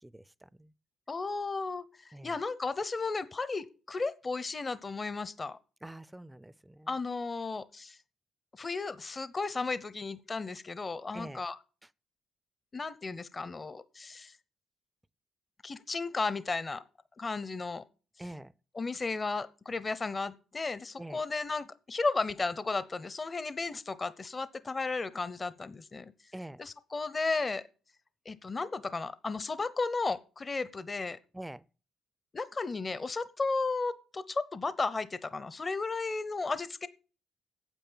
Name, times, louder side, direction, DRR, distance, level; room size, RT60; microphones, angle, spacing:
voice 1, 0.0-0.7 2.1-2.4 5.8-7.0 11.1-11.4 18.2-18.5 21.0-21.2 26.3-26.6 31.3-31.7, right 1 dB, 10° right, 0.5 m, -45 dB
voice 2, 1.1-5.6 6.9-8.0 8.5-11.6 12.7-14.4 15.6-16.8 17.2-17.8 18.8-26.1 26.6-27.6 28.3-31.2 32.3-36.9, left 3 dB, 30° left, 0.8 m, -34 dB
9.2 x 7.8 x 8.7 m
cardioid pair, 90°, 0 cm